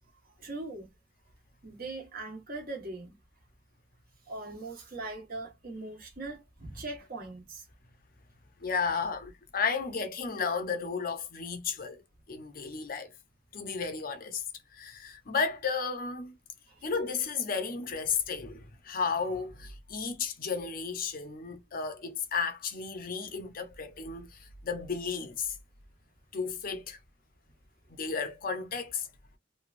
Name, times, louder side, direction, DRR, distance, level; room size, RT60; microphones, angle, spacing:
voice 1, 0.4-0.9 1.6-3.1 4.3-7.6, right 2 dB, 55° right, 1.2 m, -40 dB
voice 2, 8.6-12.0 12.3-13.1 13.5-14.4 14.7-16.4 16.8-25.6 26.3-27.0 27.9-29.1, left 5 dB, 50° left, 0.6 m, -33 dB
3.1 x 2.3 x 2.5 m
head